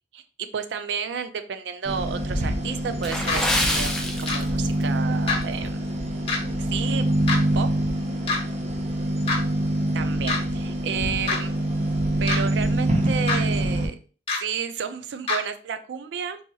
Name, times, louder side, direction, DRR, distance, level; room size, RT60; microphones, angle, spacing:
voice 1, 0.5-5.8 6.6-7.0 7.5-7.7 9.9-11.5 12.2-14.0 14.4-16.4, right 6 dB, 75° right, 9 dB, 0.4 m, -31 dB
sound 1, 1.8-13.9, right 1 dB, 40° right, 0.6 m, -25 dB
Water / Splash splatter, 3.0-4.9 5.2-5.4 6.0-6.2 6.7-6.8, left 1 dB, 5° left, 0.4 m, -27 dB
sound 2, 3.3-3.4 4.3-4.4 5.3-5.4 6.3-6.4 7.3-7.4 8.3-8.4 9.3-9.4 10.3-10.4 11.3-11.4 12.3-12.4 13.3-13.4 14.3-14.4 15.3-15.4, left 4 dB, 35° left, 0.7 m, -24 dB
4.1 x 2.7 x 2.3 m, 0.39 s
head